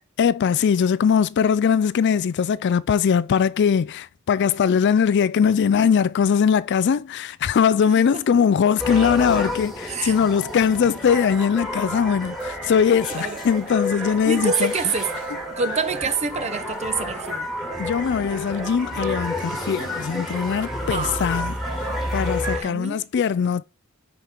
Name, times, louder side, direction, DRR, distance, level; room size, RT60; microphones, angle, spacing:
voice 1, 0.2-14.7 17.8-21.5 22.1-23.6, left 7 dB, 55° left, 0.3 m, -21 dB
sound 1, 8.8-22.6, left 1 dB, ahead, 2.0 m, -30 dB
voice 2, 13.1-13.4 14.2-15.1 15.5-17.5 20.9-21.4 22.5-23.0, right 4 dB, 30° right, 0.8 m, -27 dB
9.1 x 4.4 x 5.1 m
head